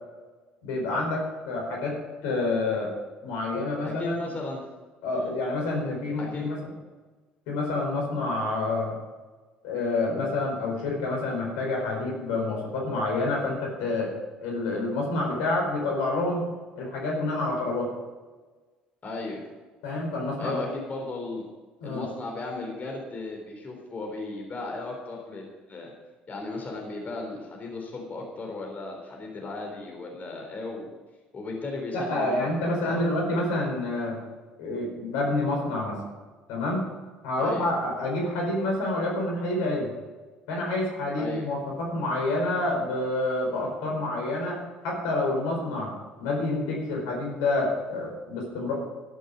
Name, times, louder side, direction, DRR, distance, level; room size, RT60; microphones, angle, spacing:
voice 1, 0.6-1.9 2.2-2.9 3.2-4.2 5.0-6.6 7.5-9.0 9.6-14.1 14.4-16.5 16.8-17.9 19.8-20.6 21.8-22.1 31.9-34.2 34.6-36.0 36.5-36.9 37.2-39.9 40.5-45.9 46.2-48.7, left 2 dB, 70° left, 0 dB, 4.7 m, -28 dB
voice 2, 3.8-4.6 5.1-5.3 6.2-6.5 19.0-19.4 20.4-21.4 21.8-25.9 26.3-30.9 31.3-33.1 37.4-37.7 41.2-41.5, left 3 dB, 35° left, 1 dB, 3.7 m, -35 dB
13.5 x 11.0 x 5.2 m, 1.3 s
hypercardioid pair, 60°, 5 cm